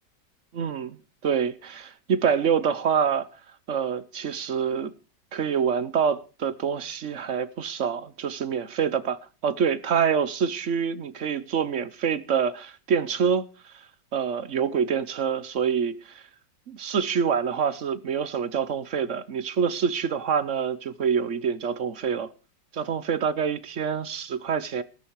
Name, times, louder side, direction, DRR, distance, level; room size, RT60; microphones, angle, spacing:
voice 1, 0.5-1.0 1.2-3.3 3.7-4.9 5.3-13.5 14.1-16.2 16.7-22.3 22.7-24.8, right 7 dB, 55° right, 1.0 m, -26 dB
15.0 x 14.0 x 4.7 m
omnidirectional pair, 1.9 m